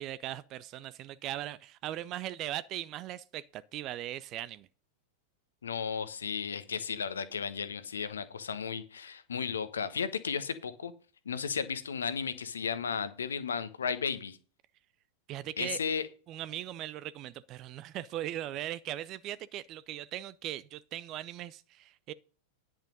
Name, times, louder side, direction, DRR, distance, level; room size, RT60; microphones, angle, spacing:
voice 1, 0.0-4.7 15.3-15.8 16.3-22.1, right 13 dB, 35° right, 0.5 m, -39 dB
voice 2, 5.6-10.9 11.2-14.4 15.6-16.1, left 6 dB, 70° left, 1.0 m, -34 dB
10.5 x 6.3 x 5.3 m
figure-of-eight pair, 90°, 0 cm